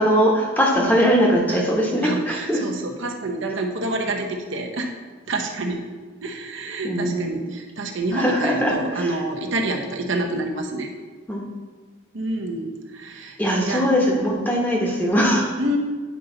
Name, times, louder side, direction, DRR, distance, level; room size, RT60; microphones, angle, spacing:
voice 1, 0.0-2.6 6.8-7.3 8.1-9.1 11.3-11.5 13.4-15.5, equal, 10° left, -2 dB, 1.0 m, -20 dB
voice 2, 2.0-4.9 5.3-5.8 6.2-10.9 12.1-13.9 15.6-15.8, right 2 dB, 70° right, 2 dB, 0.9 m, -28 dB
9.4 x 5.4 x 3.9 m, 1.4 s
head